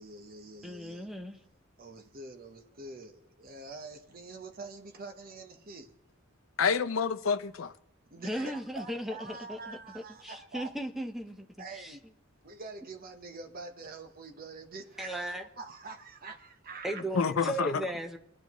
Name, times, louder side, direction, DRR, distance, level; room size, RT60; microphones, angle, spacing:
voice 1, 0.0-1.1 1.8-5.9 8.1-10.7 11.6-12.0 12.4-17.0, right 3 dB, 45° right, 1.1 m, -45 dB
voice 2, 0.6-1.4 8.2-12.0 15.0-15.4 16.8-18.2, right 1 dB, ahead, 0.8 m, -37 dB
voice 3, 6.6-7.7 17.1-17.8, left 6 dB, 75° left, 0.6 m, -28 dB
22.5 x 10.0 x 3.1 m
head